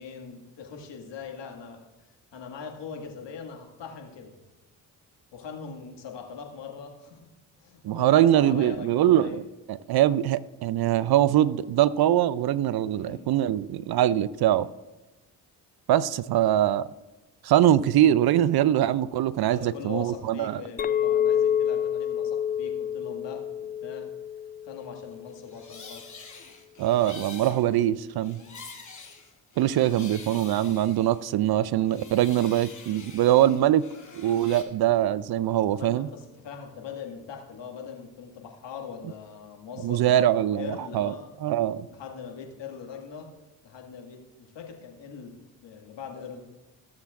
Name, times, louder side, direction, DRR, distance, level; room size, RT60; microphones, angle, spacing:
voice 1, 0.0-4.4 5.3-7.3 7.6-9.4 12.9-13.3 14.4-14.6 19.4-24.1 24.6-26.0 28.3-28.6 35.6-40.2 40.5-41.3 41.9-43.3 43.6-45.3 45.6-46.4, left 6 dB, 65° left, 2.0 m, -41 dB
voice 2, 7.8-9.4 9.7-14.7 15.9-16.9 17.4-20.6 26.8-28.4 29.6-33.8 34.1-36.1 39.8-41.1 41.4-41.9, right 12 dB, 55° right, 0.5 m, -23 dB
Chink clink, 20.8-25.3, left 9 dB, 20° left, 0.3 m, -28 dB
sound 1, 25.3-31.5 31.8-34.6, left 4 dB, 40° left, 2.6 m, -46 dB
16.0 x 7.2 x 2.5 m
hypercardioid pair, 45°, 47 cm